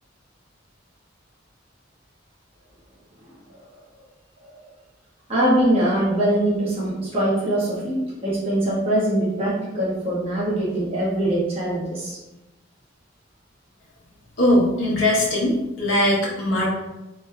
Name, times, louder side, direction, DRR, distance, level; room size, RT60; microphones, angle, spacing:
voice 1, 5.3-12.2, right 1 dB, 30° right, -8 dB, 1.3 m, -22 dB
voice 2, 14.4-16.7, left 1 dB, 85° left, -5 dB, 1.0 m, -20 dB
4.1 x 3.0 x 2.3 m, 1.0 s
head